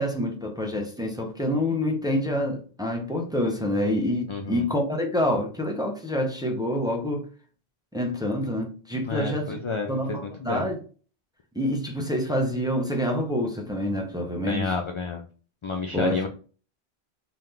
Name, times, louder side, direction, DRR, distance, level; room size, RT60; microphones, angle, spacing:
voice 1, 0.0-7.3 7.9-9.6 9.9-10.8 11.5-14.8 15.9-16.3, left 1 dB, 5° right, 0.5 m, -27 dB
voice 2, 4.3-4.7 9.0-10.7 14.4-15.2 15.6-16.3, left 4 dB, 55° left, 0.3 m, -30 dB
3.8 x 2.8 x 3.2 m
omnidirectional pair, 1.1 m